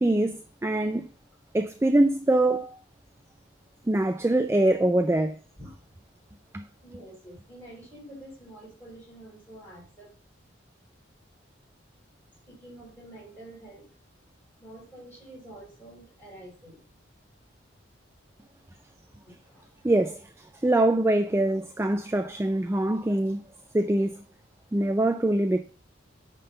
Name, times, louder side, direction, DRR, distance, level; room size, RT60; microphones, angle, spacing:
voice 1, 0.0-1.1 1.5-2.8 3.9-5.4 6.5-6.6 19.8-23.5 23.7-24.2 24.7-25.6, right 1 dB, 15° right, 0.3 m, -24 dB
voice 2, 6.8-10.1 12.5-13.9 14.6-16.8 19.3-19.6, right 1 dB, 10° left, 5.1 m, -47 dB
9.4 x 3.8 x 5.4 m
head